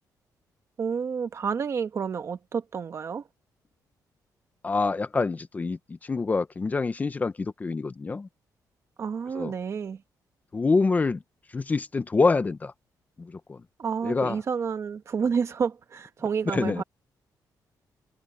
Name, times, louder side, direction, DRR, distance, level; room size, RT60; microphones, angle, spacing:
voice 1, 0.8-3.2 9.0-10.0 13.8-16.8, right 6 dB, 40° right, 1.3 m, -29 dB
voice 2, 4.6-8.3 9.3-9.5 10.5-11.2 11.5-12.7 13.2-13.6 14.0-14.4 16.5-16.8, left 4 dB, 20° left, 0.8 m, -26 dB
cardioid pair, 155°, 7 cm